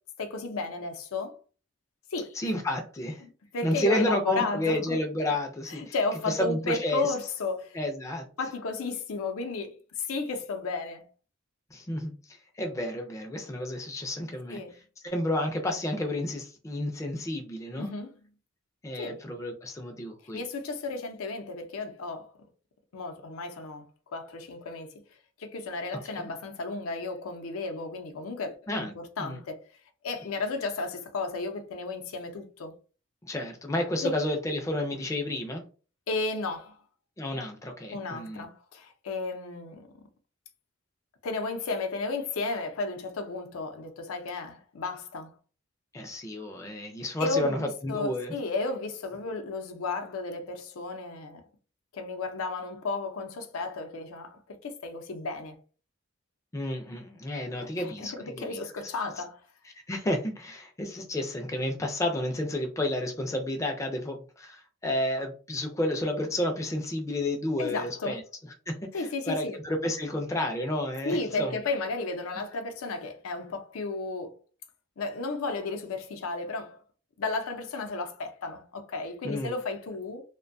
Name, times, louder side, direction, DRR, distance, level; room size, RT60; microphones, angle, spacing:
voice 1, 0.2-1.4 2.1-2.4 3.2-5.0 5.7-7.8 8.4-11.1 14.5-14.8 17.8-18.1 19.0-19.2 20.3-22.3 22.9-24.9 25.4-29.6 30.0-32.7 34.0-34.1 36.1-36.8 37.9-39.9 41.2-45.3 47.2-51.4 51.9-55.6 57.8-59.4 67.6-68.2 68.9-69.6 71.0-74.4 75.0-76.8 77.2-80.2, left 3 dB, 90° left, 0.5 m, -33 dB
voice 2, 2.3-3.2 3.6-5.9 6.3-7.1 7.7-8.3 11.7-14.6 15.0-17.9 18.8-20.4 26.1-26.3 28.7-28.9 29.2-29.4 33.2-35.6 37.2-38.4 45.9-48.3 56.5-58.9 59.9-68.2 68.7-71.6 79.2-79.6, left 1 dB, 15° left, 0.3 m, -31 dB
2.5 x 2.2 x 2.5 m
head